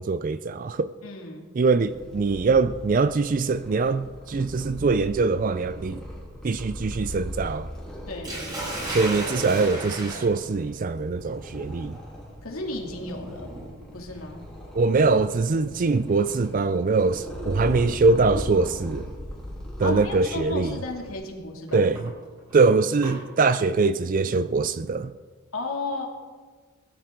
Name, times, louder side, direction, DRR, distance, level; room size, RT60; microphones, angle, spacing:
voice 1, 0.0-0.9 1.6-6.0 6.4-7.7 8.9-12.0 14.7-19.1 19.8-20.8 21.7-22.1 22.5-25.1, right 4 dB, 35° right, 0.3 m, -23 dB
voice 2, 1.0-1.5 8.1-8.4 12.4-13.5 13.9-14.4 19.8-21.9 25.5-26.1, left 2 dB, 70° left, 2.6 m, -33 dB
Purr, 1.8-21.1, equal, 5° left, 3.2 m, -40 dB
Sink (filling or washing), 8.2-18.2 19.3-19.6 20.1-20.2 21.7-23.2, right 2 dB, 20° right, 6.0 m, -37 dB
20.0 x 14.0 x 3.9 m
head